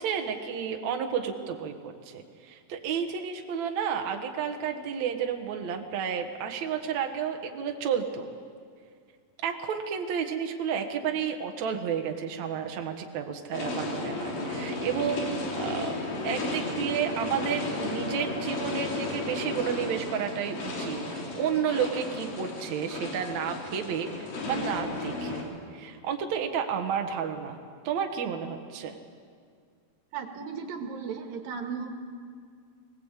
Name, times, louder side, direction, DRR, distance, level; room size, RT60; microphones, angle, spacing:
voice 1, 0.0-8.3 9.4-15.3 15.6-16.0 16.2-25.4 25.7-27.6 27.8-29.0, right 7 dB, 60° right, 3 dB, 2.6 m, -31 dB
sound 1, 13.5-25.4, left 2 dB, 90° left, 5.2 m, -34 dB
voice 2, 30.1-31.9, right 6 dB, 80° right, 4 dB, 3.4 m, -35 dB
24.5 x 19.0 x 8.3 m, 2.2 s
omnidirectional pair, 4.0 m